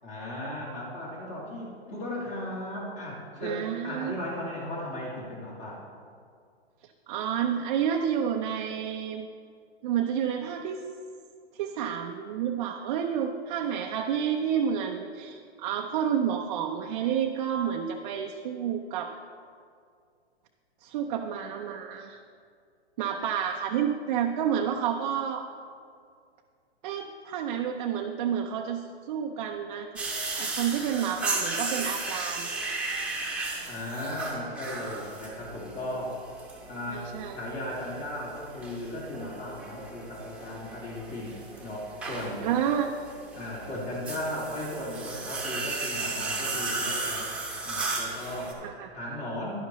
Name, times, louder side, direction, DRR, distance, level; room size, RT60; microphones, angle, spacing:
voice 1, 0.0-5.8 33.7-36.2 36.7-42.5 43.3-47.3 47.6-48.6 48.9-49.6, left 1 dB, 35° left, -5 dB, 2.3 m, -36 dB
voice 2, 3.4-4.2 7.1-9.3 9.8-10.8 11.5-19.1 20.8-22.2 23.0-25.4 26.8-29.9 30.3-32.5 36.9-37.4 42.4-42.9 48.6-48.9, right 8 dB, 40° right, 2 dB, 0.6 m, -30 dB
sound 1, 30.0-48.5, right 3 dB, 5° right, 1.1 m, -35 dB
11.0 x 11.0 x 3.0 m, 2.2 s
hypercardioid pair, 135°, 32 cm